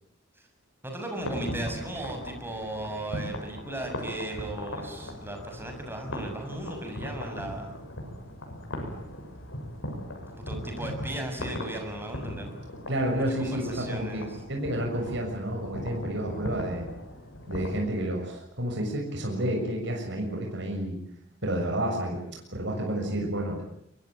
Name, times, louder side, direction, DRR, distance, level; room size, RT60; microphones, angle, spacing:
voice 1, 0.8-7.8 10.3-12.6 13.4-14.3, right 1 dB, 10° right, 3 dB, 7.0 m, -36 dB
sound 1, 1.2-17.8, equal, 75° left, 7.2 m, -38 dB
voice 2, 12.9-16.9 17.5-21.0 21.4-23.6, right 1 dB, 60° right, 1 dB, 6.9 m, -30 dB
24.5 x 22.5 x 9.0 m, 0.74 s
head